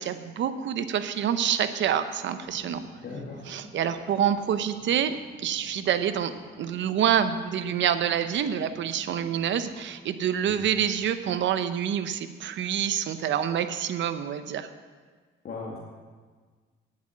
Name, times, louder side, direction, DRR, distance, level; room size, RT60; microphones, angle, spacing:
voice 1, 0.0-2.8 3.5-6.3 6.6-14.7, right 9 dB, 70° right, 11 dB, 0.8 m, -27 dB
sound 1, 2.4-9.9, left 2 dB, 85° left, 3.5 m, -51 dB
voice 2, 3.0-3.5 10.5-10.6 15.4-15.8, left 3 dB, 55° left, -3 dB, 1.9 m, -37 dB
9.8 x 8.5 x 7.3 m, 1.5 s
cardioid pair, 90°, 20 cm